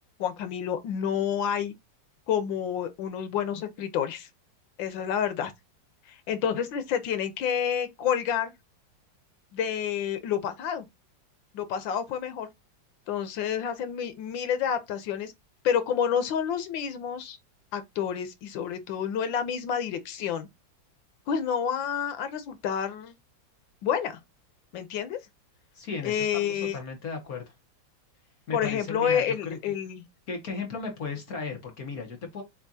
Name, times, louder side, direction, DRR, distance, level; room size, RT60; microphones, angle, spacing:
voice 1, 0.2-1.7 2.3-4.3 4.8-5.5 6.1-8.5 9.5-10.9 11.5-12.5 13.1-15.3 15.6-17.4 17.7-20.5 21.3-23.1 23.8-24.2 24.7-25.2 26.0-26.8 28.5-30.1, left 8 dB, 90° left, 1.6 m, -29 dB
voice 2, 25.7-27.4 28.5-29.6 30.3-32.4, left 4 dB, 55° left, 1.5 m, -35 dB
7.1 x 2.5 x 2.7 m
omnidirectional pair, 2.0 m